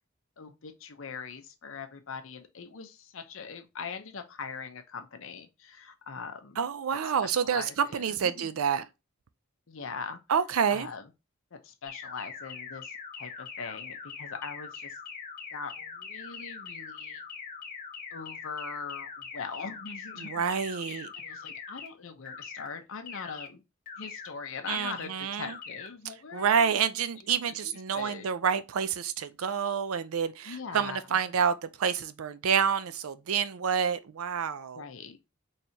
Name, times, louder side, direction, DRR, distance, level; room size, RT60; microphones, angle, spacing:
voice 1, 0.4-6.6 6.9-8.5 9.7-10.2 10.7-11.1 11.5-15.0 15.5-17.2 18.1-20.5 20.9-23.6 24.0-26.8 27.2-28.3 30.4-31.2 34.7-35.2, left 5 dB, 65° left, 0.7 m, -42 dB
voice 2, 6.6-8.8 10.3-10.9 20.2-21.1 24.7-25.5 26.3-34.8, right 7 dB, 85° right, 0.4 m, -28 dB
sound 1, 11.9-21.9 22.3-22.7 23.1-23.5 23.9-24.3 24.7-25.1 25.5-25.9, left 6 dB, 45° left, 1.0 m, -42 dB
4.3 x 3.3 x 2.7 m
head